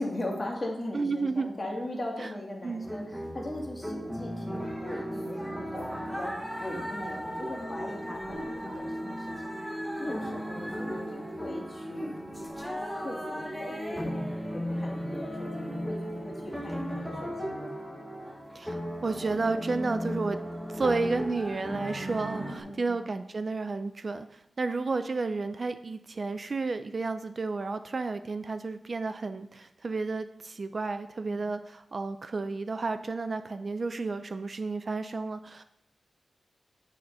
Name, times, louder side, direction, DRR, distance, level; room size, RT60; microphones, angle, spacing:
voice 1, 0.0-9.3 10.0-12.2 12.9-17.7 22.6-23.1 31.3-31.4, left 1 dB, 30° left, -2 dB, 2.0 m, -39 dB
voice 2, 0.9-1.5 2.2-2.3 2.6-2.9 18.5-20.4 20.7-35.6, right 3 dB, 45° right, 10 dB, 0.3 m, -32 dB
sound 1, 2.8-22.6, equal, ahead, 1.2 m, -36 dB
9.0 x 4.1 x 5.3 m, 0.86 s
wide cardioid pair, 120°, 0 cm